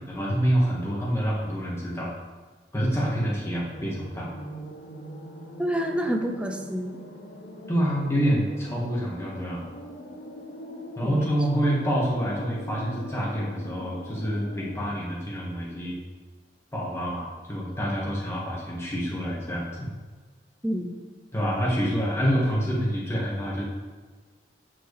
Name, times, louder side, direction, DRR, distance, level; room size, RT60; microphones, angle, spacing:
voice 1, 0.0-2.1 2.7-4.3 7.7-9.7 11.0-16.0 16.7-19.9 21.3-23.6, equal, 15° left, -4 dB, 1.7 m, -27 dB
sound 1, 3.6-15.0, equal, 70° left, 1.2 m, -41 dB
voice 2, 5.6-7.0 11.0-11.3 20.6-21.0, equal, 5° right, 3 dB, 0.6 m, -28 dB
11.5 x 4.6 x 3.3 m, 1.4 s
head